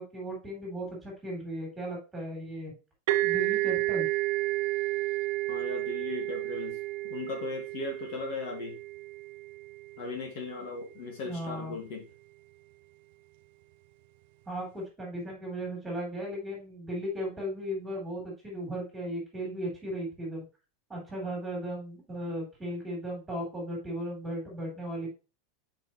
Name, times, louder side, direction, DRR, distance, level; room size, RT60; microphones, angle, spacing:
voice 1, 0.0-2.7 3.2-4.1 11.2-11.8 14.5-20.5 20.9-25.1, equal, 5° right, -2 dB, 3.5 m, -36 dB
sound 1, 3.1-10.6, right 19 dB, 55° right, 0.5 m, -31 dB
voice 2, 5.5-6.8 7.1-8.8 10.0-12.0, left 4 dB, 50° left, 2 dB, 2.0 m, -37 dB
7.9 x 5.0 x 3.1 m, 0.31 s
supercardioid pair, 165°, 0 cm